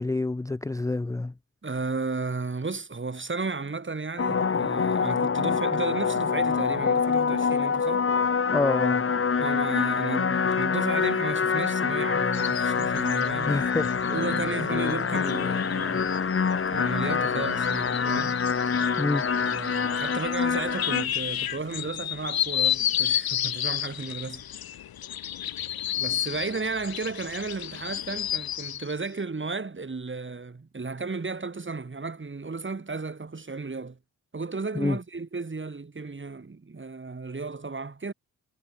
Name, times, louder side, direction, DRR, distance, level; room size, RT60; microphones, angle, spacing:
voice 1, 0.0-1.3 8.5-9.0 13.5-13.9 19.0-19.2 34.8-35.0, left 2 dB, 10° left, 0.4 m, -27 dB
voice 2, 1.6-8.1 9.4-13.7 14.1-16.1 16.7-18.4 19.4-24.4 26.0-34.0 34.3-38.1, right 4 dB, 30° right, 2.4 m, -34 dB
sound 1, 4.2-21.1, left 5 dB, 35° left, 1.0 m, -25 dB
sound 2, 12.3-28.9, left 11 dB, 75° left, 1.1 m, -32 dB
cardioid pair, 50°, 37 cm